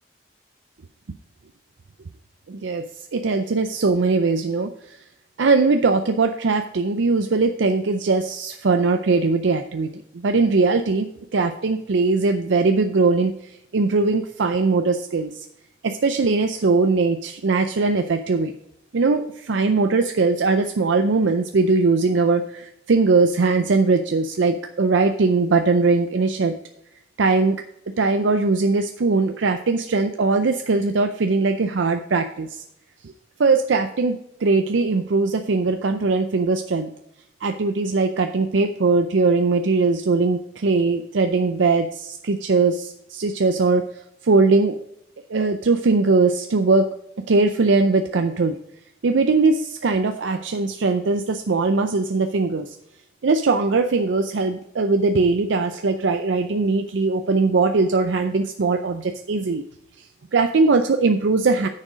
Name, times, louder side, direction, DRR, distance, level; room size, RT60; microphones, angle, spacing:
voice 1, 2.5-2.9 3.1-5.0 5.4-9.9 10.1-13.3 13.7-15.5 15.8-18.5 18.9-26.5 27.2-27.6 28.0-32.6 33.4-36.9 37.4-43.8 44.2-44.8 45.3-46.9 47.3-48.6 49.0-52.8 53.2-59.6 60.3-61.7, right 3 dB, 90° right, 7 dB, 0.5 m, -20 dB
9.8 x 6.5 x 5.1 m, 0.77 s
head